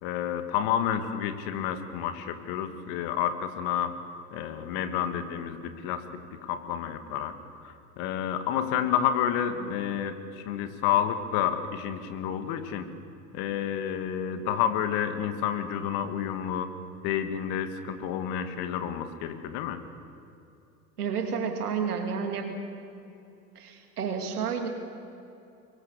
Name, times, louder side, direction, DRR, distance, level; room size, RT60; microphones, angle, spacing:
voice 1, 0.0-3.9 4.3-6.1 6.4-7.3 7.6-12.9 13.3-16.7 17.0-19.8, left 9 dB, 55° left, 9 dB, 2.0 m, -30 dB
voice 2, 21.0-22.6 23.5-24.7, right 6 dB, 80° right, 4 dB, 2.9 m, -30 dB
23.5 x 22.0 x 6.8 m, 2.7 s
figure-of-eight pair, 80°, 45 cm